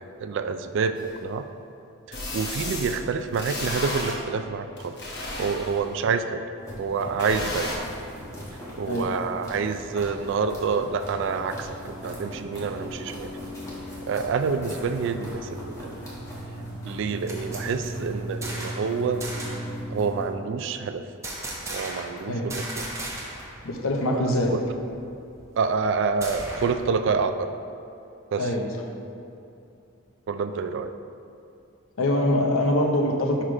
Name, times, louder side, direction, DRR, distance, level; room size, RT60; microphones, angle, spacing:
voice 1, 0.2-1.5 2.1-5.0 5.4-6.4 6.8-7.8 8.8-13.3 14.1-16.0 16.8-19.2 19.9-21.0 21.7-22.8 24.1-24.6 25.6-27.6 28.3-28.5 30.3-30.9, right 5 dB, 60° right, 9 dB, 0.3 m, -27 dB
sound 1, 1.0-1.1 2.1-3.0 3.3-4.2 4.8-5.9 7.2-7.8, left 2 dB, 50° left, 1.1 m, -32 dB
sound 2, 6.6-20.3, equal, 15° left, 1.4 m, -38 dB
sound 3, 17.3-18.9 19.2-19.7 21.2-22.2 22.5-23.6 23.8-23.9 24.3-26.9, right 1 dB, 15° right, 0.9 m, -37 dB
voice 2, 23.6-24.5 28.4-28.7 32.0-33.4, left 1 dB, 70° left, 2 dB, 0.8 m, -23 dB
5.6 x 4.9 x 4.8 m, 2.7 s
head